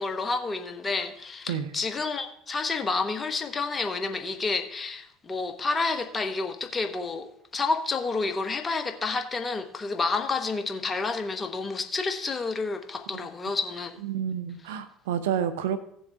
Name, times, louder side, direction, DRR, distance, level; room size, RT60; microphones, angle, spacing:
voice 1, 0.0-14.0, left 4 dB, 25° left, 1.5 m, -30 dB
voice 2, 14.0-15.8, right 8 dB, 75° right, 0.9 m, -29 dB
17.0 x 7.0 x 3.6 m
hypercardioid pair, 65°, 0 cm